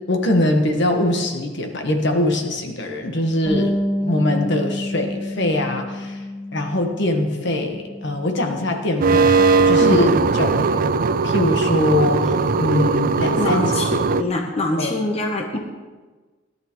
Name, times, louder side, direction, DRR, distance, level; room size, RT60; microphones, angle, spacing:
voice 1, 0.1-3.7 4.0-6.2 6.5-10.7 11.2-13.7 14.8-14.9, left 1 dB, 65° left, 4 dB, 1.4 m, -22 dB
Bass guitar, 3.4-9.7, left 1 dB, 15° left, 3.4 m, -29 dB
sound 1, 9.0-14.2, right 4 dB, 45° right, 0.4 m, -18 dB
voice 2, 13.4-15.6, left 1 dB, 35° left, 2 dB, 1.0 m, -24 dB
17.0 x 11.5 x 3.1 m, 1.3 s
head